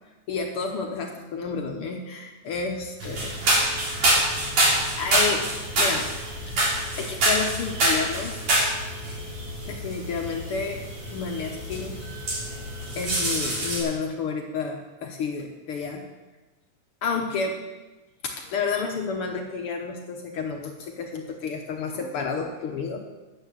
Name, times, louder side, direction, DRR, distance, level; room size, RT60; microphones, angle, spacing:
voice 1, 0.3-3.4 5.0-5.5 5.8-6.6 7.0-8.5 9.7-10.8 11.1-12.1 12.4-12.6 12.9-16.0 17.0-17.6 18.2-23.1, left 5 dB, 70° left, 2 dB, 1.3 m, -30 dB
sound 1, 3.0-13.8, right 1 dB, 60° right, 4.2 m, -26 dB
10.0 x 9.1 x 6.9 m, 1.2 s
omnidirectional pair, 3.7 m